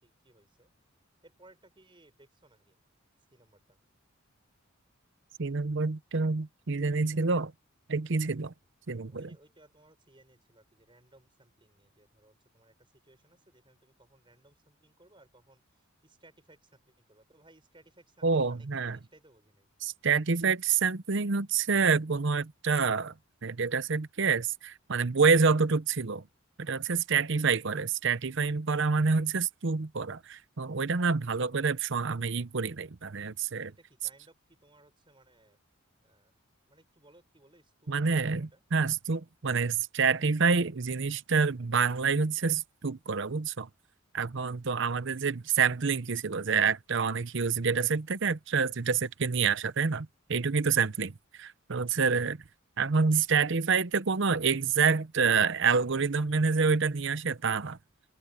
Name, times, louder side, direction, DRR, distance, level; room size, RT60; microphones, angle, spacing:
voice 1, 0.0-0.7 1.2-2.8 3.3-3.8 9.1-15.6 16.0-19.7 27.4-27.5 33.7-35.6 36.0-36.3 36.7-38.6 50.9-51.0, right 1 dB, 25° right, 5.7 m, -61 dB
voice 2, 5.4-7.5 7.9-8.5 8.9-9.3 18.2-19.0 19.8-23.1 23.4-26.2 26.6-33.7 37.9-43.7 44.1-52.4 52.8-57.8, right 5 dB, 60° right, 0.8 m, -27 dB
open air
head